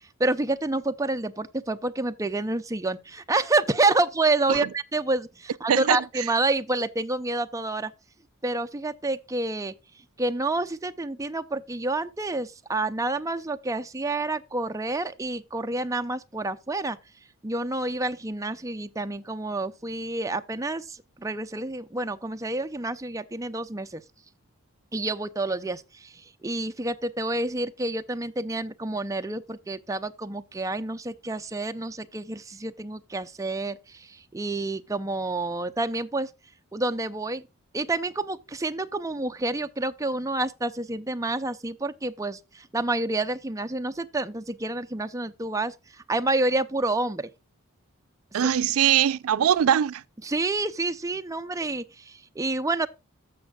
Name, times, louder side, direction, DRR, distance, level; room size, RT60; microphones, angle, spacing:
voice 1, 0.2-7.9 8.4-9.7 10.2-17.0 17.4-24.0 24.9-36.3 36.7-37.4 37.7-47.3 50.2-52.9, right 2 dB, 15° right, 0.5 m, -28 dB
voice 2, 5.7-6.3 48.3-50.0, right 9 dB, 85° right, 0.4 m, -22 dB
14.5 x 6.1 x 2.3 m
head